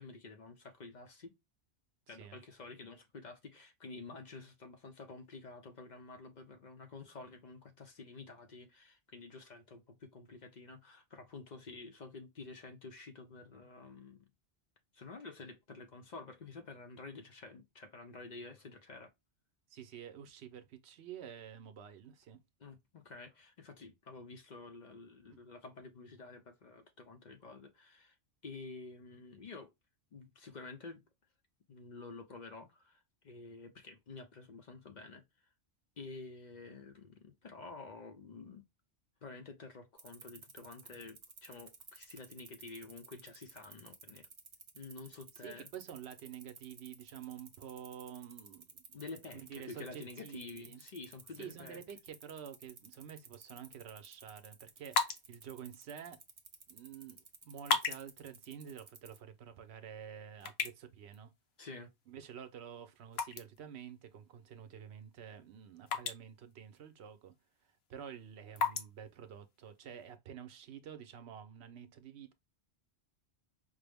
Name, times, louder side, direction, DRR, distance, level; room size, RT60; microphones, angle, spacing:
voice 1, 0.0-1.3 2.1-14.3 14.9-19.1 22.6-28.2 28.4-29.7 30.1-31.0 31.7-35.5 36.0-38.6 39.2-44.3 44.7-45.7 48.9-51.8 61.6-61.9, left 3 dB, 50° left, 0.6 m, -50 dB
voice 2, 2.1-2.4 19.7-22.4 25.3-25.4 45.4-48.8 49.3-50.8 51.4-56.2 56.7-61.3 62.1-67.3 67.6-72.3, right 8 dB, 80° right, 0.9 m, -49 dB
sound 1, 40.0-59.2, right 5 dB, 40° right, 0.7 m, -54 dB
sound 2, 54.7-70.2, left 5 dB, 70° left, 0.9 m, -42 dB
5.0 x 2.0 x 3.3 m
omnidirectional pair, 1.1 m